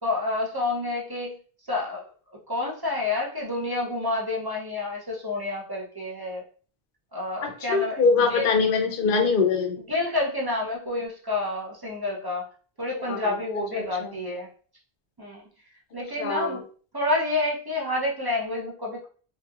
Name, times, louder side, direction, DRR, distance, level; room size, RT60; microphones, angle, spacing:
voice 1, 0.0-1.4 1.7-2.0 2.5-6.4 7.1-8.5 9.9-12.5 12.8-14.5 15.2-15.4 15.9-16.6 16.9-19.0, left 2 dB, 35° right, -2 dB, 0.4 m, -29 dB
voice 2, 7.4-9.8 13.1-13.4 13.7-14.1 16.2-16.6, left 5 dB, 65° left, 4 dB, 0.7 m, -23 dB
2.9 x 2.4 x 2.3 m, 0.42 s
omnidirectional pair, 1.1 m